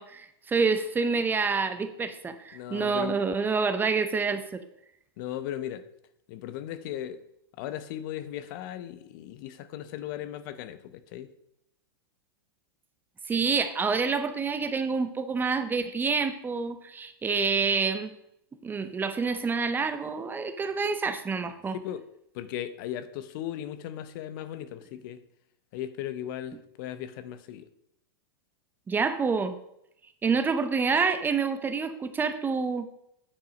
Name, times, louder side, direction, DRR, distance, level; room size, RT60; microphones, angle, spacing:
voice 1, 0.0-4.6 13.3-18.1 18.6-21.8 28.9-29.6 30.2-32.9, right 5 dB, 15° right, 10 dB, 0.6 m, -27 dB
voice 2, 2.5-3.2 5.2-5.8 6.3-7.2 7.6-11.3 21.8-22.0 22.3-25.2 25.7-27.7, left 11 dB, 55° left, 13 dB, 0.7 m, -37 dB
8.8 x 4.7 x 5.1 m, 0.78 s
hypercardioid pair, 120°, 13 cm